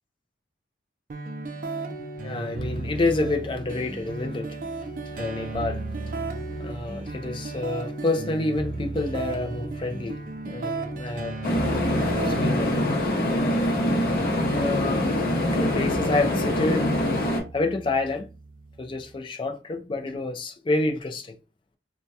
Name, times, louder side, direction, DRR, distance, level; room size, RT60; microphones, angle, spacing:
sound 1, 1.1-19.1, right 3 dB, 45° right, 0.4 m, -35 dB
voice 1, 2.2-11.4 12.2-12.8 14.5-15.2 15.5-16.9 17.2-18.3 18.8-21.4, left 2 dB, 25° left, 0.3 m, -29 dB
sound 2, 11.4-17.4, left 1 dB, 50° left, 0.7 m, -24 dB
2.2 x 2.1 x 2.7 m
head